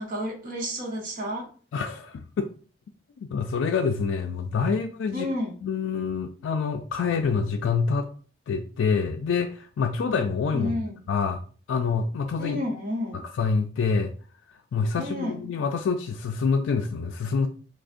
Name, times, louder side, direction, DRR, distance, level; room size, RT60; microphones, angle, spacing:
voice 1, 0.0-1.5 5.1-5.5 10.5-11.0 12.4-13.2 15.0-15.5, left 1 dB, 45° right, 0 dB, 0.9 m, -31 dB
voice 2, 1.7-2.5 3.3-5.3 5.6-8.1 8.5-10.8 11.1-11.4 11.7-12.6 13.3-14.1 14.7-17.5, left 5 dB, 90° left, 5 dB, 0.3 m, -26 dB
4.9 x 2.1 x 2.5 m, 0.40 s
head